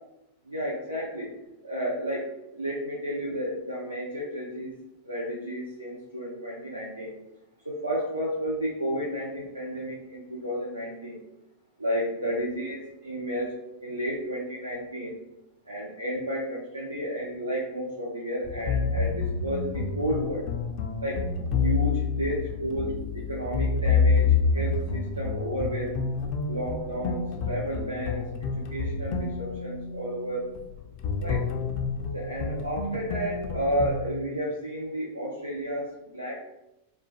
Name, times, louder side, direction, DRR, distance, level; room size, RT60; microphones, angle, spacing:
voice 1, 0.5-1.4 1.6-7.2 7.6-11.2 11.8-13.5 13.8-15.2 15.7-20.4 21.0-21.3 21.6-26.0 26.5-30.5 31.2-31.5 32.1-36.4, equal, 85° right, -4 dB, 0.5 m, -32 dB
sound 1, 18.4-34.0, left 5 dB, 45° left, 0.3 m, -28 dB
3.2 x 2.2 x 2.3 m, 0.92 s
figure-of-eight pair, 90°, 0 cm